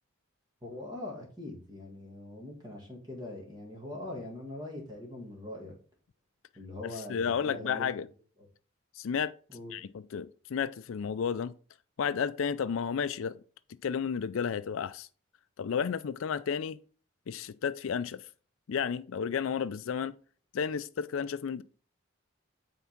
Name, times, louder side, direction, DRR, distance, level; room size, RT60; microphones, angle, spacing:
voice 1, 0.6-5.7 6.6-8.0 9.5-9.7, left 1 dB, 20° right, 1.8 m, -42 dB
voice 2, 6.8-8.1 9.0-9.3 9.7-11.5 12.0-13.4 13.8-15.1 15.6-16.8 17.3-18.3 18.7-20.1 20.5-21.6, left 7 dB, 75° left, 0.4 m, -32 dB
9.2 x 3.6 x 5.9 m
head